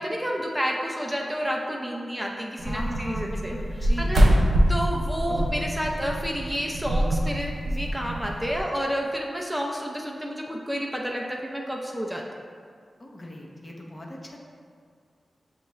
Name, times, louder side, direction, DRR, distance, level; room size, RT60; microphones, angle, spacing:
voice 1, 0.0-3.5 4.0-4.3 4.7-12.3, equal, 5° right, -1 dB, 0.4 m, -30 dB
voice 2, 2.6-4.5 5.3-5.5 13.0-14.4, left 1 dB, 40° left, -1 dB, 0.7 m, -38 dB
sound 1, 2.6-8.6, equal, 85° right, 0.4 m, -24 dB
6.4 x 2.4 x 3.0 m, 2.1 s
cardioid pair, 50°, 0 cm